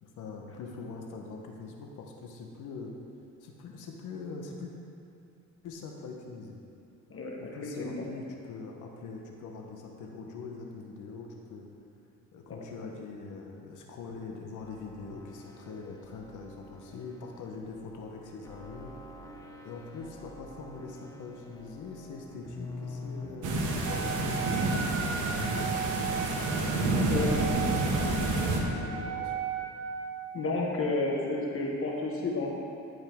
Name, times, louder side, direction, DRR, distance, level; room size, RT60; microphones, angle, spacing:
voice 1, 0.0-3.0 3.4-4.7 5.6-6.6 7.4-11.7 12.3-18.9 19.6-26.2 26.9-29.3, left 4 dB, 85° left, 1 dB, 1.1 m, -43 dB
voice 2, 7.1-8.0 12.6-12.7 27.1-27.3 30.3-32.5, left 2 dB, 45° left, -1 dB, 1.4 m, -31 dB
sound 1, 14.6-24.6, left 2 dB, 10° left, 1.1 m, -46 dB
sound 2, 23.4-28.6, right 2 dB, 80° right, 1.3 m, -29 dB
Wind instrument woodwind instrument, 23.8-30.3, right 6 dB, 50° right, 1.0 m, -36 dB
13.0 x 5.4 x 3.6 m, 2.6 s
cardioid pair, 90°, 30 cm